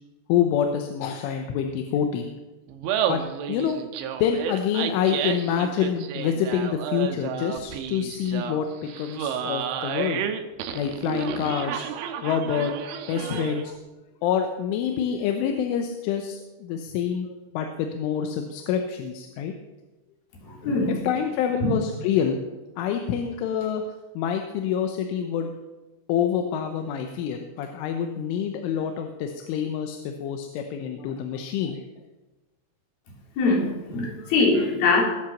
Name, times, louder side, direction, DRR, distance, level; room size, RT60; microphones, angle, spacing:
voice 1, 0.3-2.3 3.1-3.2 3.5-3.8 4.2-8.7 9.0-10.2 10.8-11.9 12.2-12.7 13.1-13.7 14.2-17.3 17.5-19.5 21.0-22.4 22.8-23.8 24.2-25.5 26.1-31.8, left 8 dB, 85° left, 5 dB, 3.6 m, -26 dB
Laughter, 2.7-13.7, right 8 dB, 85° right, 3.5 m, -31 dB
voice 2, 20.4-21.0 33.4-35.0, left 3 dB, 55° left, -1 dB, 5.0 m, -22 dB
21.0 x 8.0 x 7.2 m, 1.1 s
omnidirectional pair, 5.5 m